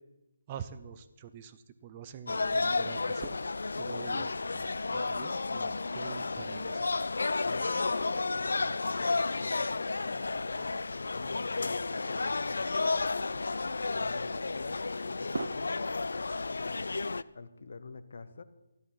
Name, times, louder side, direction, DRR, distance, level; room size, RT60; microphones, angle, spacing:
voice 1, 0.5-3.4 3.8-6.9, right 8 dB, 20° right, 11 dB, 0.6 m, -46 dB
sound 1, 2.3-17.2, left 3 dB, 85° left, 0.5 m, -32 dB
voice 2, 4.0-4.4 7.4-13.0 13.9-17.0 17.3-18.4, left 4 dB, 55° left, 13 dB, 1.0 m, -47 dB
sound 2, 6.1-15.5, right 3 dB, 70° right, 0.9 m, -48 dB
13.5 x 12.5 x 5.6 m, 0.99 s
hypercardioid pair, 170°, 0 cm